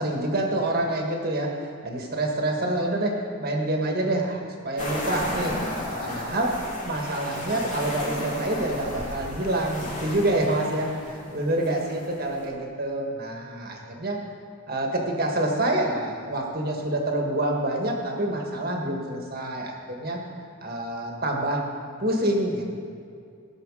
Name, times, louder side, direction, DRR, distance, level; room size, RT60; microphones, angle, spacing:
voice 1, 0.0-1.5 1.8-6.5 6.8-14.2 14.7-20.2 20.6-21.6 22.0-22.6, right 1 dB, 45° right, 1 dB, 1.6 m, -27 dB
sound 1, 4.8-12.5, left 1 dB, 35° left, 2.4 m, -34 dB
17.5 x 6.6 x 4.9 m, 2.4 s
head